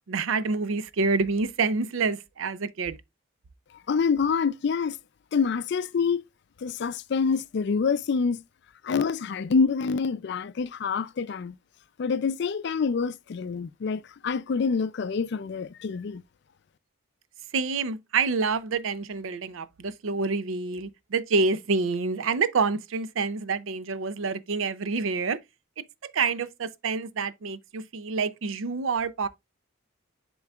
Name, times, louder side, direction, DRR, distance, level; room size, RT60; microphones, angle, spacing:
voice 1, 0.0-3.0 17.5-25.4 26.0-29.3, right 4 dB, 75° right, 0.5 m, -27 dB
voice 2, 3.9-5.0 5.3-6.2 6.6-8.4 8.8-11.6 12.0-16.2, left 5 dB, 55° left, 0.4 m, -26 dB
10.5 x 3.8 x 2.3 m
head